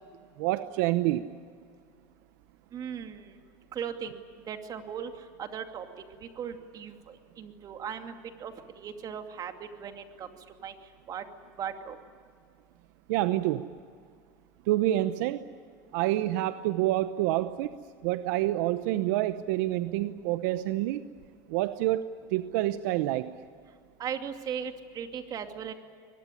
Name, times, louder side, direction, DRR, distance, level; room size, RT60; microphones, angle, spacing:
voice 1, 0.4-1.4 13.1-13.7 14.7-15.5 15.9-17.7 18.0-21.1 21.5-23.4, right 15 dB, 75° right, 12 dB, 0.9 m, -28 dB
voice 2, 2.7-3.4 3.7-4.2 4.5-5.1 5.4-5.8 6.2-8.1 8.4-10.3 10.6-10.7 11.1-11.2 11.6-12.0 24.0-25.7, right 8 dB, 40° right, 6 dB, 2.5 m, -38 dB
23.5 x 21.0 x 10.0 m, 2.2 s
supercardioid pair, 115°, 10 cm